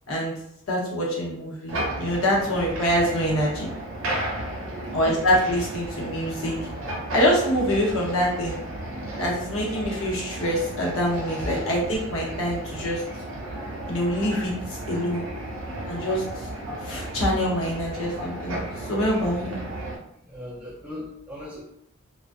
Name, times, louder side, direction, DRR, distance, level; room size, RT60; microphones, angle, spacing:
voice 1, 0.7-3.7 4.9-6.6 7.1-8.6 9.2-13.0 13.9-15.3 15.9-16.2 16.8-19.6, equal, 85° left, -3 dB, 0.8 m, -25 dB
sound 1, 1.7-20.0, right 1 dB, 70° right, 0.6 m, -34 dB
voice 2, 4.3-4.7 20.3-21.6, left 1 dB, 5° right, -5 dB, 0.5 m, -39 dB
2.4 x 2.1 x 2.5 m, 0.76 s
head